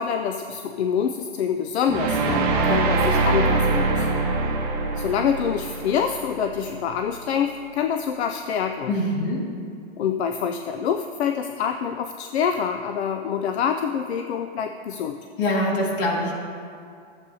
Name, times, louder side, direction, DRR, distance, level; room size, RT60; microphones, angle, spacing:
voice 1, 0.0-4.1 4.4-4.5 5.0-8.9 10.0-15.2, left 7 dB, 80° left, 6 dB, 0.5 m, -26 dB
sound 1, 1.9-7.0, right 3 dB, 35° right, 1.3 m, -23 dB
voice 2, 8.9-9.4 15.4-16.3, left 1 dB, 55° left, -1 dB, 2.0 m, -23 dB
12.5 x 8.0 x 2.8 m, 2.3 s
supercardioid pair, 165°, 32 cm